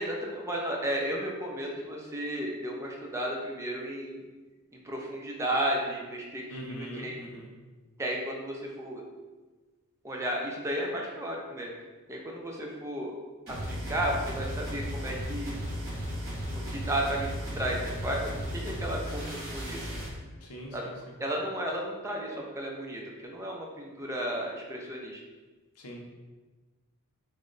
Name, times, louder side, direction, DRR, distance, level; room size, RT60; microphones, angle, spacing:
voice 1, 0.0-4.2 4.8-7.2 8.0-9.0 10.0-11.7 12.1-13.1 13.5-15.6 16.5-17.3 17.5-19.9 20.7-20.9 21.2-25.2, right 1 dB, 15° right, -1 dB, 0.4 m, -33 dB
voice 2, 6.5-7.5 20.4-20.9 25.8-26.0, right 1 dB, 85° left, 0 dB, 0.6 m, -42 dB
sound 1, 13.5-20.2, equal, 45° right, 1.3 m, -35 dB
3.0 x 2.1 x 3.7 m, 1.3 s
head